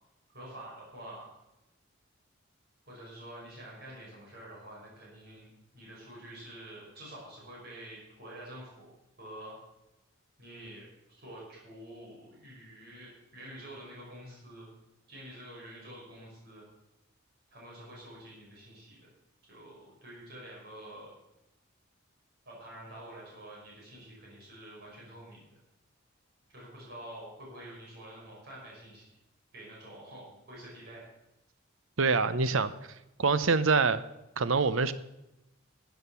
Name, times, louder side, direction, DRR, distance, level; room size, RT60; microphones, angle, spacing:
voice 1, 0.3-1.3 2.9-8.9 9.2-9.6 10.4-14.7 15.1-16.7 17.5-19.1 19.5-21.1 22.5-25.6 26.5-29.1 29.5-31.0, right 1 dB, 50° right, -5 dB, 5.4 m, -48 dB
voice 2, 32.0-32.7 33.2-34.0 34.4-34.9, right 4 dB, 70° right, 14 dB, 0.7 m, -25 dB
12.5 x 8.1 x 7.0 m, 0.93 s
head